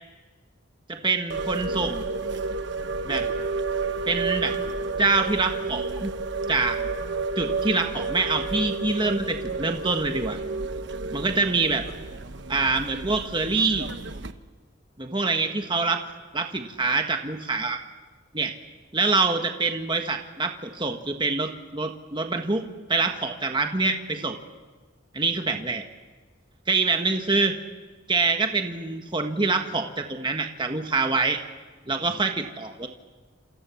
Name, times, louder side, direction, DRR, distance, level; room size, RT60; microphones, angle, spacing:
voice 1, 0.9-2.1 3.0-3.3 4.1-4.6 5.0-6.1 6.5-6.8 7.4-10.4 11.1-11.9 12.5-13.9 15.0-16.0 16.3-17.8 18.3-18.5 18.9-24.4 25.1-25.8 26.7-27.6 28.1-31.4 31.9-32.9, right 3 dB, 25° right, 5 dB, 1.5 m, -25 dB
sound 1, 1.3-14.3, right 3 dB, 65° right, 1.2 m, -31 dB
28.5 x 28.0 x 7.2 m, 1.4 s
head